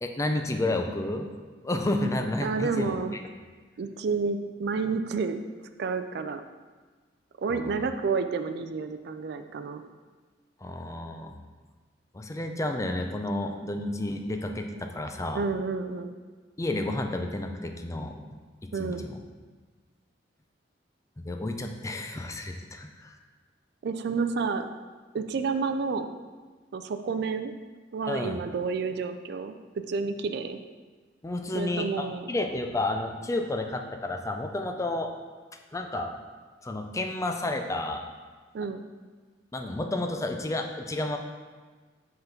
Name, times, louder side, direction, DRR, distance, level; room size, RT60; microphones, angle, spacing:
voice 1, 0.0-1.3 1.6-2.9 7.5-7.7 10.6-11.3 12.1-15.4 16.6-18.2 18.6-19.2 21.2-23.2 28.1-28.4 31.2-35.1 35.7-36.1 36.6-38.0 39.5-41.2, left 2 dB, 15° left, 4 dB, 0.4 m, -31 dB
voice 2, 2.4-3.2 3.8-5.4 5.8-6.4 7.4-9.8 15.3-16.1 18.7-19.0 23.8-24.7 25.1-26.1 26.7-27.6 27.9-29.6 29.9-30.6 31.5-32.3 38.5-38.9, right 4 dB, 60° right, 8 dB, 0.4 m, -30 dB
5.5 x 3.8 x 5.8 m, 1.4 s
head